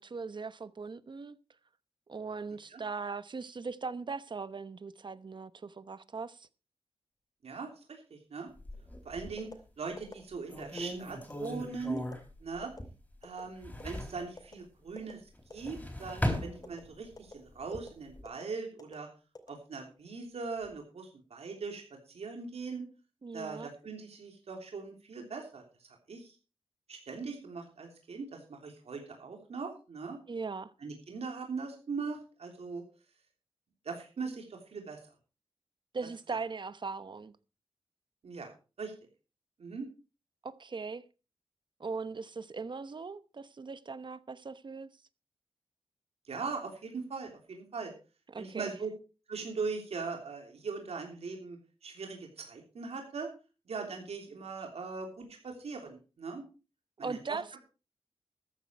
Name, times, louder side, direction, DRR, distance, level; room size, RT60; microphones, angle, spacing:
voice 1, 0.0-1.4 2.1-6.5 23.2-23.7 30.3-30.7 35.9-37.3 40.4-41.0 41.8-44.9 48.3-48.8 57.0-57.5, right 4 dB, 45° right, 0.9 m, -39 dB
voice 2, 7.4-8.5 9.0-9.5 9.8-12.0 12.4-12.7 13.2-15.2 15.5-19.1 19.5-21.8 22.1-22.8 23.3-25.6 26.1-26.3 26.9-30.2 30.8-32.8 33.8-35.0 38.2-38.5 38.8-38.9 39.6-39.9 46.3-47.9 48.4-48.9 49.3-53.3 53.7-56.4 57.0-57.2 57.5-57.6, right 4 dB, 80° right, 3.3 m, -40 dB
sound 1, 8.6-9.5 10.0-10.1 10.5-13.1 13.4-14.3 15.4-17.2 17.6-18.2, left 1 dB, 15° left, 4.0 m, -38 dB
sound 2, 9.4-9.6 10.0-10.2 10.6-10.8 11.3-11.5 12.0-12.1 12.6-12.8 13.2-13.4 13.8-14.0 14.4-14.5 15.0-15.1 15.5-15.8 16.1-16.3 16.6-16.8 17.2-17.3 17.7-17.9 18.2-18.4 18.8-19.0 19.3-20.0 20.4-20.7, left 3 dB, 35° left, 2.8 m, -47 dB
14.0 x 10.5 x 4.5 m
wide cardioid pair, 105°, 11 cm